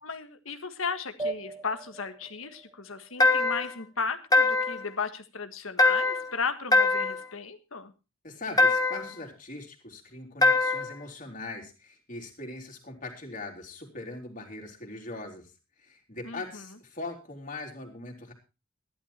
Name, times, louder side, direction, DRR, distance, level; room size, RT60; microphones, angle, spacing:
voice 1, 0.0-7.9 16.2-16.6, left 5 dB, 70° left, 9 dB, 1.6 m, -35 dB
sound 1, 1.2-4.2, right 2 dB, 20° right, 1.4 m, -40 dB
sound 2, 3.2-3.7 4.3-4.9 5.8-6.3 6.7-7.3 8.6-9.1 10.4-10.9, left 3 dB, 20° left, 1.7 m, -22 dB
voice 2, 8.2-15.5 15.8-18.3, left 2 dB, 40° left, 1 dB, 3.8 m, -41 dB
14.5 x 12.0 x 4.3 m, 0.30 s
head